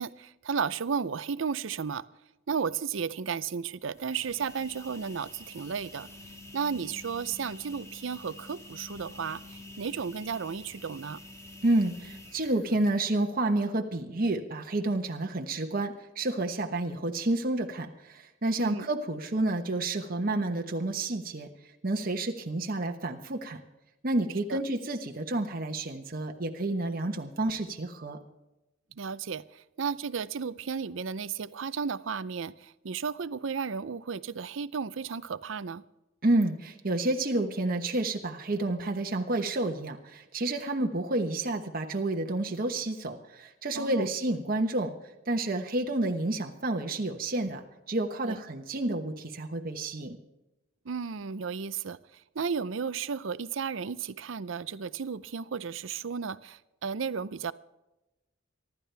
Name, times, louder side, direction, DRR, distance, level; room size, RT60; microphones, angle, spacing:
voice 1, 0.0-2.0 2.5-6.1 6.5-11.2 18.6-18.9 24.5-24.6 29.0-35.8 43.8-44.1 48.2-48.4 50.9-57.5, right 6 dB, 75° right, 17 dB, 0.6 m, -34 dB
sound 1, 3.8-13.3, left 2 dB, 15° left, 1.6 m, -48 dB
voice 2, 11.6-21.5 21.8-23.6 24.0-28.2 36.2-44.9 45.3-50.2, right 2 dB, 45° right, 3 dB, 1.1 m, -30 dB
24.5 x 12.0 x 3.4 m, 0.98 s
head